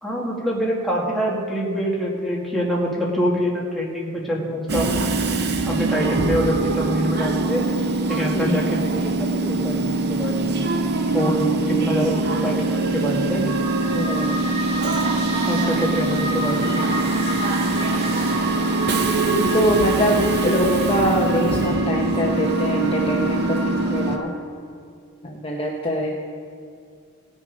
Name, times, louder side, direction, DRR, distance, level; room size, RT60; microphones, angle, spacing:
voice 1, 0.0-4.9 5.7-7.7 8.1-10.6 11.1-13.4 15.4-16.8, equal, ahead, -4 dB, 1.7 m, -25 dB
Train / Subway metro underground, 4.7-24.2, right 2 dB, 50° right, 0.7 m, -23 dB
voice 2, 11.2-12.1 13.9-14.4 14.8-15.1 17.6-17.7 19.3-24.3 25.2-26.2, equal, 25° left, -1 dB, 0.8 m, -24 dB
sound 1, 13.5-24.2, right 2 dB, 30° right, 1.7 m, -30 dB
17.5 x 6.3 x 5.1 m, 2.3 s
head